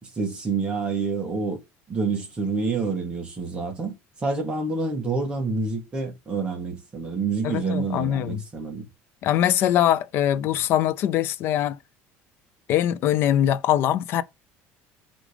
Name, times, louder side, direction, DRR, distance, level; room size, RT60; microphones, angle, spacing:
voice 1, 0.0-1.6 1.9-8.8, right 4 dB, 15° right, 1.6 m, -28 dB
voice 2, 7.4-8.4 9.2-11.8 12.7-14.2, left 11 dB, 45° left, 0.5 m, -22 dB
5.1 x 3.7 x 5.0 m
cardioid pair, 170°, 6 cm